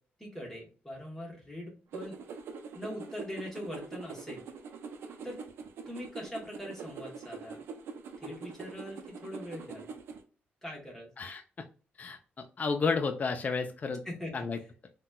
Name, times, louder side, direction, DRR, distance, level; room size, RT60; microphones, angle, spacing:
voice 1, 0.2-2.2 2.7-4.4 5.2-5.4 5.9-7.6 8.2-9.9 10.6-11.1 14.0-14.3 14.6-14.7, left 1 dB, 10° left, -3 dB, 1.2 m, -42 dB
sound 1, 1.9-10.2, right 5 dB, 85° right, 0.4 m, -44 dB
voice 2, 12.6-14.0 14.3-14.6, left 4 dB, 40° left, 6 dB, 0.4 m, -31 dB
3.9 x 2.2 x 2.2 m, 0.38 s
cardioid pair, 85°, 4 cm